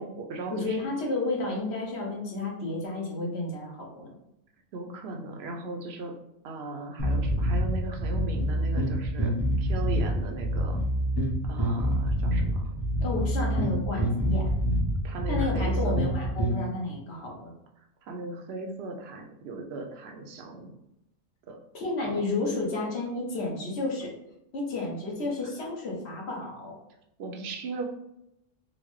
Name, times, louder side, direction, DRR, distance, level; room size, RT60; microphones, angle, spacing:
voice 1, 0.0-0.8 4.7-6.1 6.4-10.8 11.5-12.7 15.0-15.9 18.1-20.7 21.5-21.6 27.2-27.8, right 3 dB, 65° right, 3 dB, 0.7 m, -37 dB
voice 2, 0.5-4.1 13.0-14.5 15.3-17.5 21.7-24.1 24.5-26.8, left 2 dB, 60° left, -2 dB, 1.1 m, -31 dB
sound 1, 7.0-16.6, equal, 25° left, 0.7 m, -27 dB
4.0 x 2.1 x 3.1 m, 0.84 s
omnidirectional pair, 1.3 m